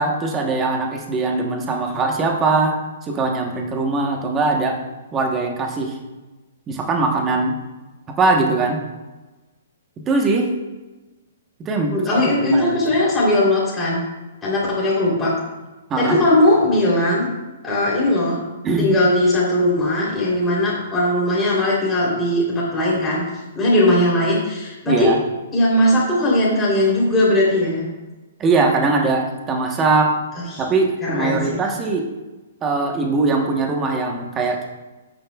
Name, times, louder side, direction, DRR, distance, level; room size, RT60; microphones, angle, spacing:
voice 1, 0.0-2.7 3.0-4.8 5.1-6.0 6.7-7.5 8.2-8.8 10.1-10.5 11.6-12.2 12.5-12.8 15.9-16.2 18.6-18.9 24.9-25.2 28.4-30.1 30.6-32.1 32.6-34.6, right 3 dB, 15° right, 2 dB, 1.1 m, -21 dB
voice 2, 11.9-14.0 14.4-15.3 16.0-17.3 17.6-18.4 18.8-23.2 23.5-25.1 25.5-27.9 30.5-30.6 31.0-31.8, left 1 dB, 10° left, -6 dB, 3.3 m, -19 dB
12.5 x 9.0 x 2.3 m, 1.1 s
hypercardioid pair, 165°, 0 cm